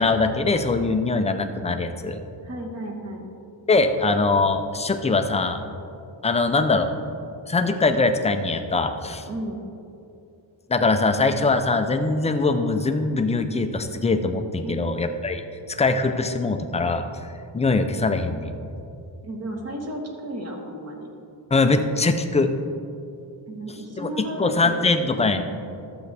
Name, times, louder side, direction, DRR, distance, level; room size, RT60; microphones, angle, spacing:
voice 1, 0.0-2.2 3.7-5.6 6.2-6.9 7.5-9.3 10.7-15.4 15.7-17.0 17.5-18.5 21.5-22.5 24.0-24.1 24.4-25.4, left 3 dB, 15° left, 7 dB, 0.4 m, -22 dB
voice 2, 2.4-3.3 9.2-9.6 14.6-14.9 19.2-21.1 23.5-24.8, right 1 dB, 35° right, 1 dB, 1.3 m, -33 dB
12.0 x 7.8 x 3.4 m, 2.6 s
wide cardioid pair, 145°, 46 cm